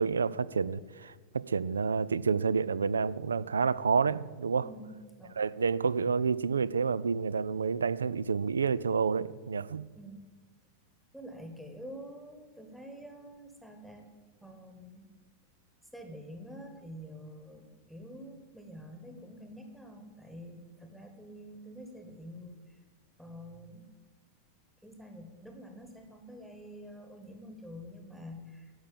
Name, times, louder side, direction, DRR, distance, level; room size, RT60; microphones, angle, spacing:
voice 1, 0.0-4.7 5.4-9.9, right 5 dB, 70° right, 0.3 m, -29 dB
voice 2, 4.6-5.4 9.9-10.3 11.1-14.1 14.4-15.1 15.9-22.8 23.2-23.9 24.8-28.7, equal, ahead, 1.1 m, -47 dB
11.0 x 6.2 x 7.5 m
figure-of-eight pair, 90°, 0 cm